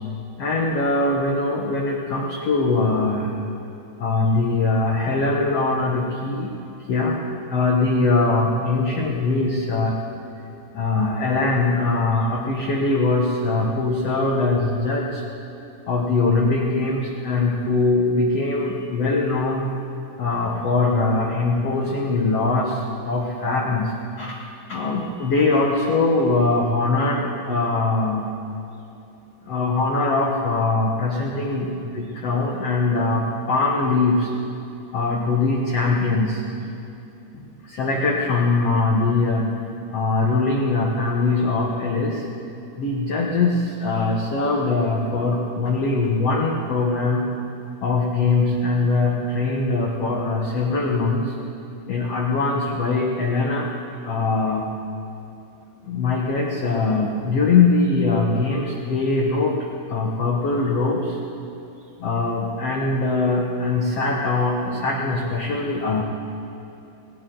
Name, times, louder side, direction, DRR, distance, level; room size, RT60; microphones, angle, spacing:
voice 1, 0.4-3.3 4.0-6.5 6.9-7.2 7.5-10.0 10.7-15.2 15.9-19.7 20.2-23.9 24.2-24.4 24.7-28.2 29.5-34.3 34.9-36.4 37.7-39.5 39.9-42.2 42.8-47.3 47.8-51.3 51.9-53.7 54.0-54.7 55.9-59.5 59.9-61.2 62.0-66.0, left 3 dB, 70° left, -1 dB, 1.5 m, -22 dB
19.5 x 17.0 x 3.9 m, 2.7 s
omnidirectional pair, 4.6 m